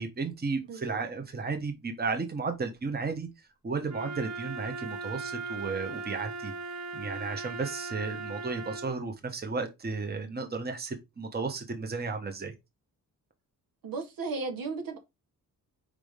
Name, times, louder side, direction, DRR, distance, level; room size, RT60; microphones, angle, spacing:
voice 1, 0.0-3.3 3.6-6.5 6.9-12.5, right 4 dB, 25° right, 1.3 m, -34 dB
Wind instrument woodwind instrument, 3.9-9.0, right 3 dB, 55° right, 0.8 m, -38 dB
voice 2, 13.8-15.0, right 4 dB, 75° right, 1.8 m, -35 dB
4.9 x 3.7 x 5.1 m
cardioid pair, 105°, 35 cm